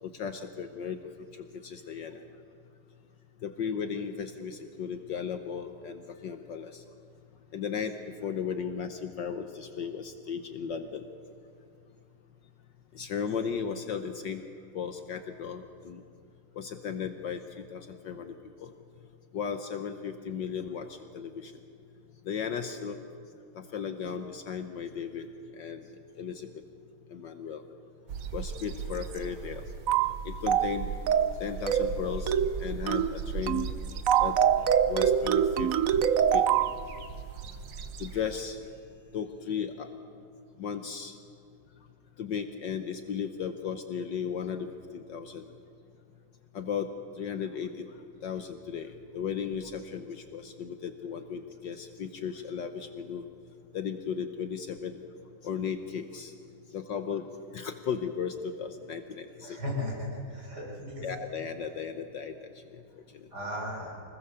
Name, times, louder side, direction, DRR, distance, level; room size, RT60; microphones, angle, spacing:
voice 1, 0.0-1.0 1.6-2.2 3.4-6.8 7.5-7.9 8.2-11.1 12.9-14.4 14.7-16.0 16.5-18.3 18.6-18.7 19.3-20.9 21.1-21.5 22.2-23.0 23.6-25.3 25.5-25.8 26.2-26.5 27.1-27.6 28.3-29.6 30.2-30.9 31.4-32.3 32.6-33.7 34.2-34.4 34.9-35.7 36.3-36.4 38.0-38.6 39.1-39.9 40.6-41.1 42.2-44.7 44.9-45.4 46.5-46.9 47.2-47.8 48.2-53.3 53.7-55.0 55.4-56.3 56.7-57.2 57.5-59.6 61.0-62.5, left 7 dB, 60° left, 7 dB, 1.5 m, -35 dB
sound 1, 28.1-38.4, right 6 dB, 65° right, 1.7 m, -39 dB
sound 2, 29.9-30.1 30.5-30.7 31.1-31.4 31.7-31.9 32.3-32.5 32.9-33.1 33.5-33.7 34.1-36.7, right 8 dB, 80° right, 0.7 m, -24 dB
voice 2, 59.4-61.1 63.3-64.0, left 1 dB, 50° right, -3 dB, 7.1 m, -36 dB
25.0 x 20.5 x 6.9 m, 2.4 s
omnidirectional pair, 2.4 m